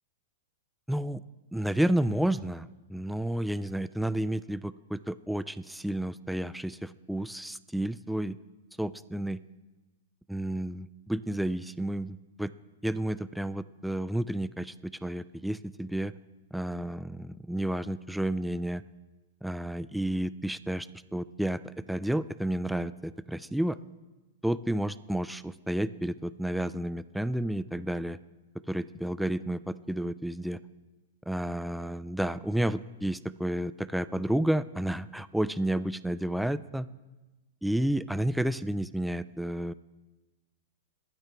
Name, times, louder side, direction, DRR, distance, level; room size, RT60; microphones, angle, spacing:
voice 1, 0.9-1.2 1.5-8.4 8.8-9.4 10.3-12.5 12.8-16.1 16.5-18.8 19.4-21.6 21.9-23.8 24.4-28.2 28.7-30.6 31.3-36.9 37.6-39.7, right 1 dB, ahead, 15 dB, 0.3 m, -31 dB
22.0 x 8.9 x 3.5 m, 1.2 s
hypercardioid pair, 130°, 0 cm